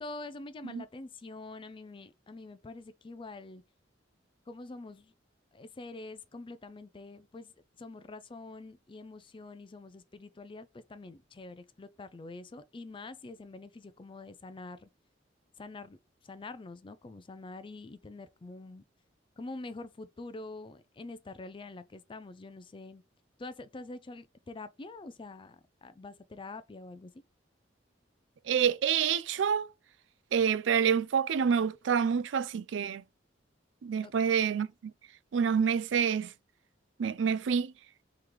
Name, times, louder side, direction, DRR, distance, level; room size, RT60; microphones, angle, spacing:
voice 1, 0.0-3.6 4.5-5.1 5.5-7.5 7.8-14.9 15.6-16.0 16.2-18.8 19.4-23.0 23.4-27.1 34.0-34.4, left 2 dB, 30° left, 0.4 m, -45 dB
voice 2, 28.5-29.7 30.3-33.0 33.8-34.7 35.3-36.3 37.0-37.7, right 7 dB, 75° right, 0.4 m, -27 dB
3.7 x 3.0 x 4.7 m
head